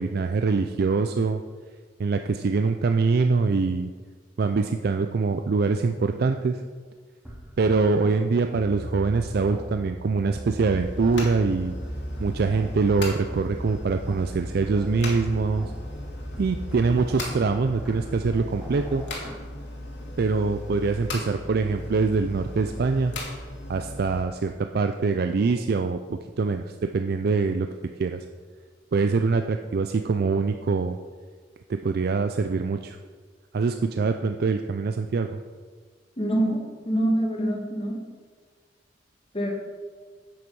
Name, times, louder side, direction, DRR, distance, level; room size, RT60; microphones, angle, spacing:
voice 1, 0.0-1.4 2.0-3.9 4.4-6.6 7.6-11.7 12.2-15.7 16.4-19.0 20.2-23.1 23.7-27.7 28.0-28.2 28.9-31.0 31.7-33.0 33.5-35.4, right 4 dB, 55° right, 7 dB, 0.4 m, -24 dB
sound 1, 7.2-19.4, right 1 dB, 5° right, 2.1 m, -39 dB
sound 2, 10.7-24.2, left 1 dB, 75° left, 2.0 m, -37 dB
voice 2, 36.2-38.1 39.3-39.5, right 1 dB, 30° left, 0 dB, 1.6 m, -25 dB
8.0 x 7.8 x 5.3 m, 1.5 s
head